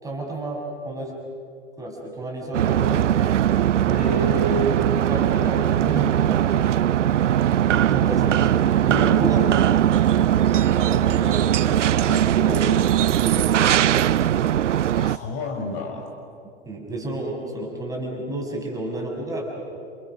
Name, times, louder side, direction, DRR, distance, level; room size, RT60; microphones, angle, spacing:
voice 1, 0.0-1.1 1.8-3.3 4.9-6.5 7.9-9.5 10.1-10.4 10.7-11.9 12.2-12.6 13.1-14.3 16.7-19.6, right 2 dB, 10° right, -1 dB, 6.8 m, -31 dB
sound 1, 2.5-15.2, right 11 dB, 85° right, 0.6 m, -20 dB
voice 2, 3.9-5.0 12.1-12.3 14.9-16.1, right 1 dB, 40° left, 4 dB, 5.2 m, -29 dB
29.5 x 29.0 x 6.3 m, 2.4 s
hypercardioid pair, 115°, 35 cm